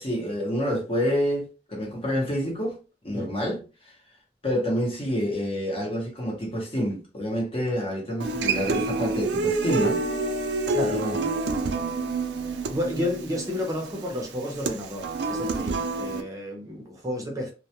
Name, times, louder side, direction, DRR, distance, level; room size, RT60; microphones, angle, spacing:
voice 1, 0.0-2.8 3.0-3.6 4.4-10.0 10.8-11.2, equal, 35° left, 0.8 m, -28 dB
Human voice / Acoustic guitar, 8.2-16.2, right 3 dB, 75° right, 0.4 m, -28 dB
sound 1, 9.5-14.3, left 3 dB, 55° left, 0.4 m, -39 dB
voice 2, 12.5-17.5, left 1 dB, 20° right, 0.6 m, -31 dB
2.2 x 2.1 x 2.8 m
head